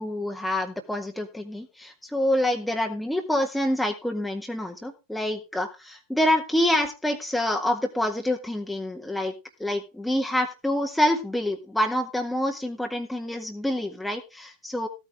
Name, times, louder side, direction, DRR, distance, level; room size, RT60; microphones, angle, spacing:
voice 1, 0.0-9.3 9.6-14.9, left 1 dB, 5° left, 3 dB, 1.7 m, -27 dB
15.5 x 9.0 x 3.6 m, 0.28 s
figure-of-eight pair, 90°, 0 cm